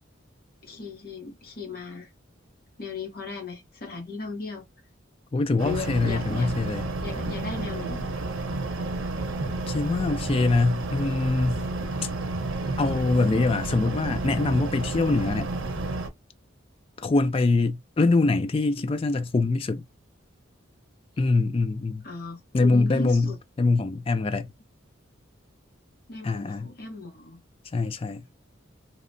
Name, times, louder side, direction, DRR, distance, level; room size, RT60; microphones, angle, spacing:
voice 1, 0.6-2.1 2.8-4.6 5.6-6.5 7.0-8.1 22.0-23.4 26.1-27.4, left 4 dB, 45° left, 0.8 m, -36 dB
voice 2, 5.3-6.9 9.7-11.7 12.8-15.5 17.0-19.9 21.2-22.0 22.5-24.5 26.2-26.7 27.7-28.2, left 3 dB, 25° left, 0.3 m, -24 dB
sound 1, 5.6-16.1, right 2 dB, 75° right, 0.7 m, -31 dB
2.9 x 2.0 x 2.5 m
head